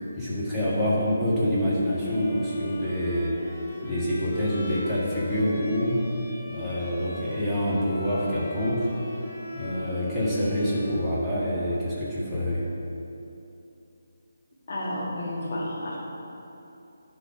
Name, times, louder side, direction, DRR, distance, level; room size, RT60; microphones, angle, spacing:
voice 1, 0.1-3.4 3.8-6.0 6.5-8.9 9.5-12.7, equal, 5° right, -12 dB, 1.6 m, -26 dB
Bowed string instrument, 1.8-11.6, equal, 15° left, 1.9 m, -39 dB
voice 2, 14.7-16.0, left 1 dB, 45° left, -5 dB, 2.0 m, -31 dB
10.5 x 4.0 x 4.9 m, 2.8 s
figure-of-eight pair, 150°, 0 cm